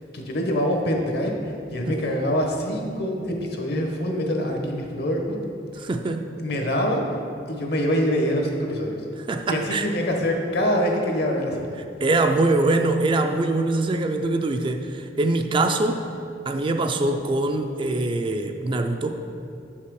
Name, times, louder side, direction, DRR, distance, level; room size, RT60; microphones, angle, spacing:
voice 1, 0.1-5.4 6.4-7.0 7.5-9.0 9.5-11.7, equal, 65° left, 2 dB, 1.0 m, -25 dB
voice 2, 5.7-6.3 9.2-9.9 12.0-16.0 16.5-19.2, right 2 dB, 30° right, 6 dB, 0.3 m, -23 dB
6.9 x 5.7 x 4.7 m, 2.6 s
head